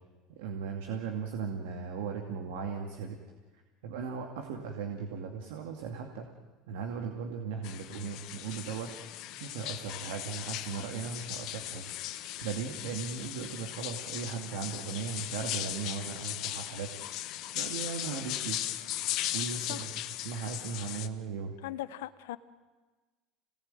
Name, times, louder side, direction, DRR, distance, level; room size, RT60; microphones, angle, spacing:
voice 1, 0.4-3.2 3.8-6.3 6.7-8.9 9.4-11.8 12.4-16.9 17.2-18.6 19.3-19.9 20.2-21.5, right 6 dB, 85° right, 3 dB, 2.4 m, -37 dB
sound 1, 7.6-21.1, left 14 dB, 60° left, 1.4 m, -38 dB
voice 2, 21.6-22.4, left 14 dB, 90° left, 12 dB, 1.1 m, -39 dB
27.0 x 19.0 x 9.1 m, 1.3 s
supercardioid pair, 105°, 0 cm